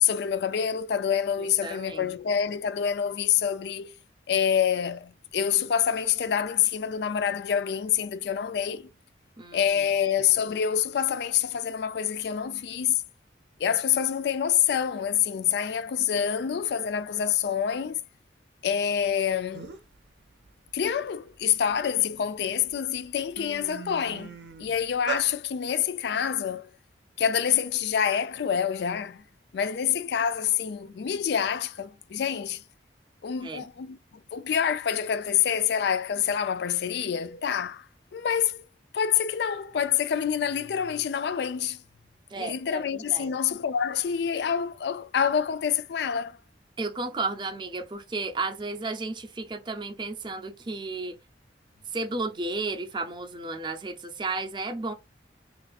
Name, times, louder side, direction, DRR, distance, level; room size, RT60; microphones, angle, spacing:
voice 1, 0.0-3.9 4.3-8.9 9.5-13.0 13.6-18.0 18.6-19.7 20.7-26.7 27.2-29.2 29.5-32.6 33.2-34.0 34.3-37.9 38.1-38.6 38.9-41.8 42.4-46.4, left 8 dB, 65° left, 0.3 m, -27 dB
voice 2, 1.6-2.1 9.4-9.6 33.4-33.6 42.3-43.3 46.8-51.2 51.9-54.9, right 3 dB, 25° right, 0.5 m, -33 dB
sound 1, 19.2-19.3 19.5-20.0 20.4-22.0 22.6-22.7 23.0-25.3, right 6 dB, 75° right, 0.6 m, -39 dB
2.5 x 2.3 x 4.1 m
head